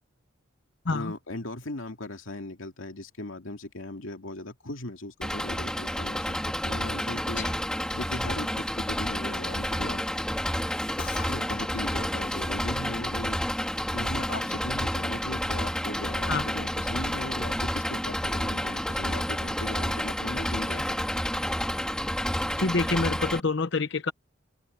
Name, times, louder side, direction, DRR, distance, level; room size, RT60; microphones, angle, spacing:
voice 1, 0.9-7.5 7.9-10.0 11.0-13.4 13.9-21.0, left 2 dB, 75° left, 2.5 m, -38 dB
Engine, 5.2-23.4, equal, 5° left, 2.0 m, -30 dB
voice 2, 22.6-24.1, left 3 dB, 60° left, 0.9 m, -27 dB
head